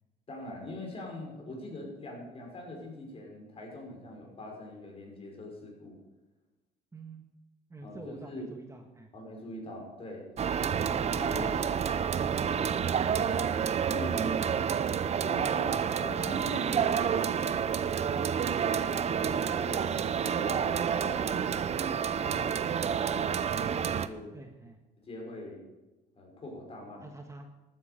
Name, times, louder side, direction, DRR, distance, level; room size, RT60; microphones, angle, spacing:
voice 1, 0.3-6.0 7.8-8.5 9.1-10.3 10.6-11.9 13.9-14.4 15.2-17.5 18.0-19.9 20.2-24.3 25.0-25.6 26.2-27.1, left 1 dB, 35° left, 0 dB, 5.6 m, -43 dB
voice 2, 6.9-7.2 7.7-9.1 24.3-24.8 27.0-27.6, right 3 dB, 20° right, 4 dB, 1.5 m, -48 dB
sound 1, 10.4-24.1, right 7 dB, 40° right, 0.7 m, -29 dB
13.5 x 9.6 x 6.8 m, 1.1 s
cardioid pair, 110°, 17 cm